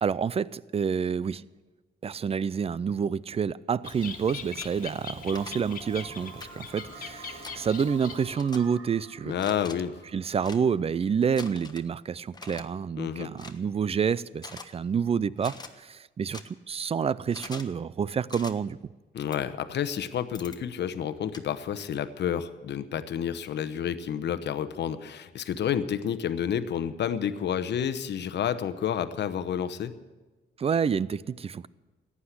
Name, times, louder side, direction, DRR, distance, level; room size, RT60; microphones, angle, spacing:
voice 1, 0.0-1.4 2.0-9.3 10.1-18.8 30.6-31.7, right 6 dB, 30° right, 0.4 m, -28 dB
Bird, 3.8-8.6, left 6 dB, 45° left, 1.8 m, -41 dB
sound 1, 4.5-4.7 5.3-5.5 6.4-6.5 7.4-7.6 8.4-8.6 9.3-9.7 10.4-10.6 11.4-11.9 12.3-12.6 13.4-13.6 14.4-14.7 15.4-15.7 16.3-16.4 17.3-17.7 18.3-18.5 19.3-19.4 20.3-20.6 21.3-21.4, left 3 dB, 20° left, 1.2 m, -43 dB
sound 2, 5.1-10.9, right 5 dB, 80° right, 2.1 m, -49 dB
voice 2, 9.2-10.0 13.0-13.3 19.1-29.9, left 9 dB, 60° left, 1.0 m, -30 dB
14.5 x 9.8 x 8.1 m
cardioid pair, 90°, 20 cm